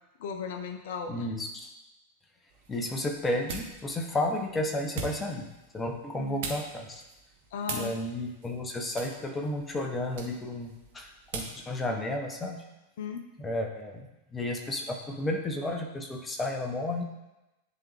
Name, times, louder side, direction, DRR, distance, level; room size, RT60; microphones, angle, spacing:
voice 1, 0.2-1.3 6.2-6.5 7.5-7.9 13.0-13.3, left 6 dB, 55° left, 6 dB, 0.6 m, -36 dB
voice 2, 1.1-1.7 2.7-5.5 5.7-7.0 7.7-12.6 13.4-14.0 14.3-17.0, left 1 dB, 15° left, 3 dB, 0.9 m, -32 dB
sound 1, 2.5-11.7, right 5 dB, 55° right, 1.1 m, -43 dB
10.5 x 3.5 x 3.4 m, 0.98 s
figure-of-eight pair, 90°, 0 cm